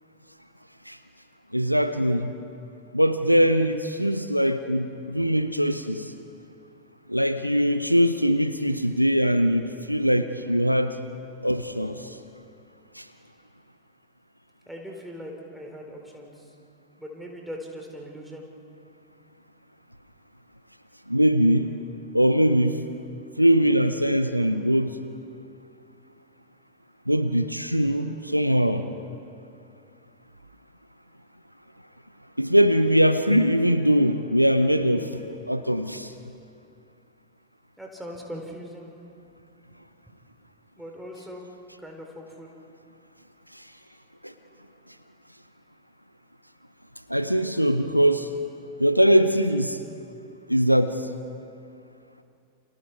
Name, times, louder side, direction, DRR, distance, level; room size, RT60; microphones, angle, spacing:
voice 1, 1.5-2.4 2.9-6.1 7.1-11.0 11.4-12.2 12.9-13.1 21.1-21.7 22.1-22.7 23.4-25.0 27.1-28.9 32.4-36.1 43.5-43.6 44.2-44.3 47.1-48.3 48.8-49.8 50.5-51.1, equal, 90° right, 10 dB, 0.8 m, -22 dB
voice 2, 14.7-16.5 17.0-18.4 37.8-38.9 40.8-41.5 41.8-42.5, equal, ahead, 0 dB, 3.9 m, -40 dB
30.0 x 27.5 x 4.7 m, 2.5 s
figure-of-eight pair, 90°, 0 cm